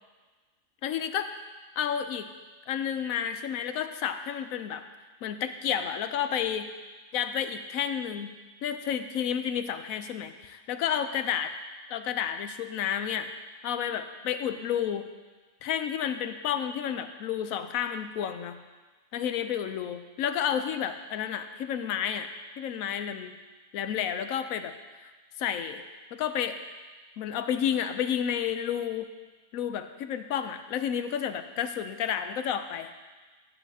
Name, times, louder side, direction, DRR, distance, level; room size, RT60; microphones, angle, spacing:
voice 1, 0.8-1.3 1.8-2.3 2.7-4.9 5.2-6.7 7.1-8.3 8.6-11.5 11.9-13.3 13.6-15.1 15.6-18.6 19.1-22.3 22.6-23.4 23.7-24.7 25.0-25.1 25.4-25.8 26.1-26.6 27.2-29.1 29.5-32.9, left 9 dB, 85° left, 9 dB, 1.0 m, -31 dB
14.0 x 8.2 x 2.8 m, 1.3 s
omnidirectional pair, 1.4 m